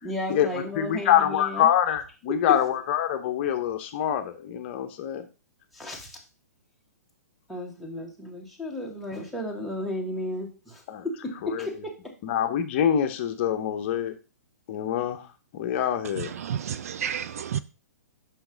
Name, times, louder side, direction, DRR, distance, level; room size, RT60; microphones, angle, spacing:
voice 1, 0.0-1.7 2.5-2.6 5.7-6.2 7.5-12.2, left 1 dB, ahead, 1.6 m, -34 dB
voice 2, 0.8-5.2 10.9-11.0 11.5-11.7 12.2-14.1 14.7-15.3 15.5-16.3, left 10 dB, 40° left, 0.8 m, -25 dB
voice 3, 16.4-17.6, right 9 dB, 60° right, 0.4 m, -30 dB
5.9 x 5.9 x 3.9 m
figure-of-eight pair, 120°, 9 cm